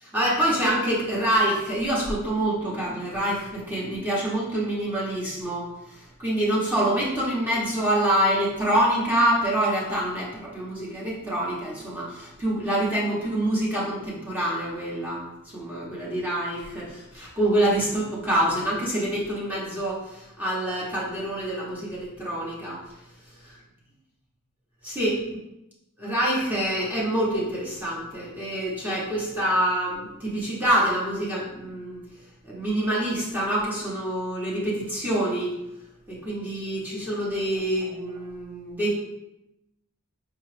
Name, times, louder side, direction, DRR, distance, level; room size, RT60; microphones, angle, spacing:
voice 1, 0.0-5.6 5.9-15.2 15.5-22.8 24.8-25.2 26.0-32.0 32.4-35.5 36.1-38.9, right 1 dB, 10° right, -6 dB, 0.8 m, -26 dB
4.6 x 2.3 x 3.2 m, 0.89 s
head